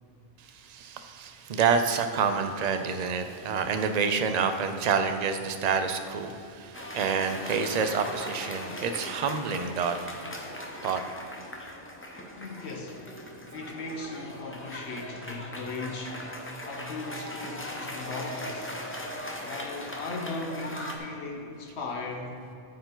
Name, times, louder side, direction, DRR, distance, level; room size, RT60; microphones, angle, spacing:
voice 1, 0.5-10.1 10.8-11.0, right 6 dB, 50° right, 7 dB, 0.6 m, -28 dB
Cheering / Applause, 6.7-21.0, left 1 dB, 15° left, 0.7 m, -39 dB
voice 2, 12.3-16.3 16.6-18.8 19.4-22.4, left 3 dB, 75° left, 1 dB, 1.3 m, -38 dB
13.0 x 4.7 x 3.9 m, 2.6 s
omnidirectional pair, 1.1 m